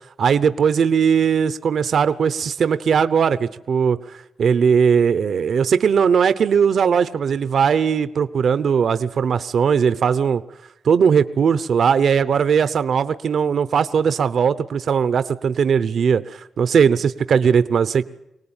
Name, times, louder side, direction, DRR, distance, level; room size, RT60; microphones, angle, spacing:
voice 1, 0.2-4.0 4.4-10.4 10.8-18.0, right 7 dB, 65° right, 13 dB, 0.8 m, -18 dB
24.5 x 18.5 x 8.9 m, 0.86 s
cardioid pair, 90°, 0 cm